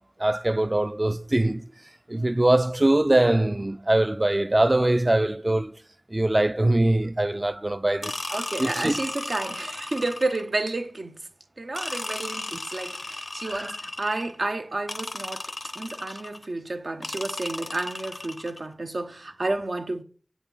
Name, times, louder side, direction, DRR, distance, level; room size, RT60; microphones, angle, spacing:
voice 1, 0.2-1.7 2.1-5.8 6.1-8.2 8.6-9.0 13.5-13.7, right 1 dB, 40° right, 0.4 m, -22 dB
sound 1, 8.0-10.6 11.7-14.4 14.9-16.5 17.0-18.7, left 2 dB, 75° left, 0.6 m, -35 dB
voice 2, 8.3-11.3 11.6-20.0, right 2 dB, 85° right, 0.8 m, -31 dB
8.1 x 5.6 x 6.9 m
wide cardioid pair, 45°, 0 cm